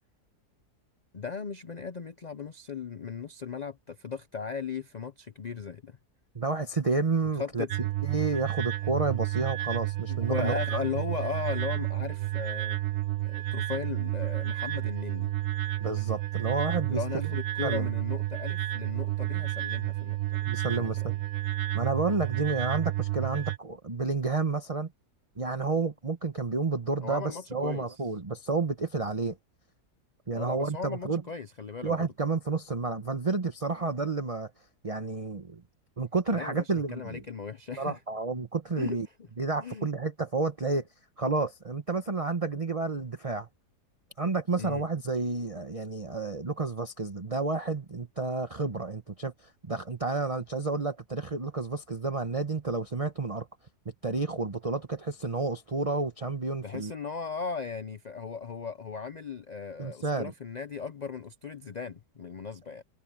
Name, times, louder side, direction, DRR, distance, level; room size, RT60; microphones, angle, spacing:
voice 1, 1.1-6.0 7.4-7.7 10.1-12.8 13.2-15.3 16.9-20.4 21.0-21.2 27.0-27.9 30.3-32.1 36.3-38.0 38.8-39.0 39.6-39.9 44.6-44.8 56.6-62.8, left 6 dB, 75° left, 0.4 m, -37 dB
voice 2, 6.3-7.7 8.0-10.8 15.8-17.3 17.6-17.9 20.5-21.1 21.7-24.9 25.4-29.4 30.3-31.2 31.8-34.5 34.8-35.6 36.0-37.2 37.8-39.1 39.4-40.9 41.2-43.5 44.2-53.5 54.0-56.9 59.8-60.3, right 3 dB, 25° right, 1.1 m, -30 dB
sound 1, 7.7-23.6, right 17 dB, 65° right, 0.7 m, -31 dB
omnidirectional pair, 1.7 m